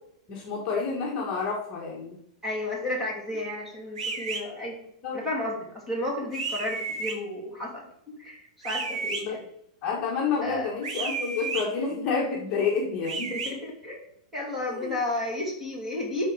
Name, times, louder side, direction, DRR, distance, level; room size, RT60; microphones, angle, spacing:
voice 1, 0.3-2.2 5.0-5.2 9.2-9.4 9.8-13.3 14.7-15.0, left 5 dB, 25° left, -2 dB, 1.6 m, -29 dB
voice 2, 2.4-4.8 5.1-9.4 10.4-10.7 13.3-14.0 14.3-16.3, left 1 dB, 5° right, -3 dB, 2.4 m, -32 dB
sound 1, 4.0-4.4 6.3-7.2 8.6-9.2 10.8-11.6 13.0-13.5, right 4 dB, 80° right, 1.9 m, -32 dB
11.5 x 4.1 x 4.8 m, 0.73 s
supercardioid pair, 165°, 4 cm